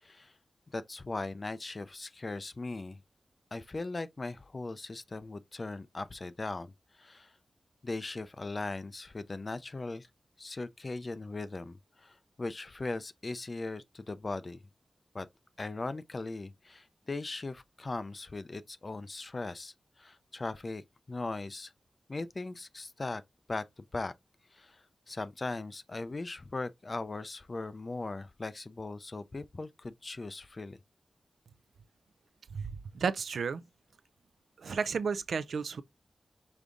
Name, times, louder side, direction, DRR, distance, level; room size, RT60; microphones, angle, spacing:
voice 1, 0.0-0.3 0.7-3.0 3.5-6.7 7.0-7.3 7.8-10.1 10.4-14.6 15.1-15.3 15.6-21.7 22.1-23.2 23.5-24.1 24.5-30.8, left 3 dB, 40° left, 0.4 m, -39 dB
voice 2, 32.5-33.6 34.6-35.8, right 5 dB, 85° right, 0.3 m, -33 dB
5.1 x 3.5 x 2.5 m
wide cardioid pair, 75°, 0 cm